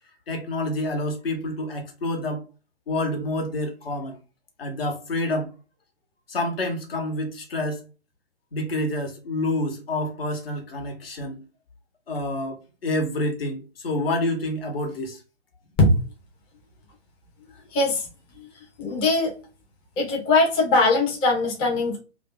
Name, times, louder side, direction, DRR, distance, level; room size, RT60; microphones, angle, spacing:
voice 1, 0.3-2.4 2.9-4.2 4.6-5.5 6.3-7.8 8.5-11.4 12.1-15.2, left 1 dB, 65° left, 1.3 m, -28 dB
voice 2, 17.7-18.0 18.8-19.3 20.0-22.0, left 2 dB, 15° left, 0.6 m, -20 dB
3.0 x 2.4 x 3.4 m
figure-of-eight pair, 125°, 32 cm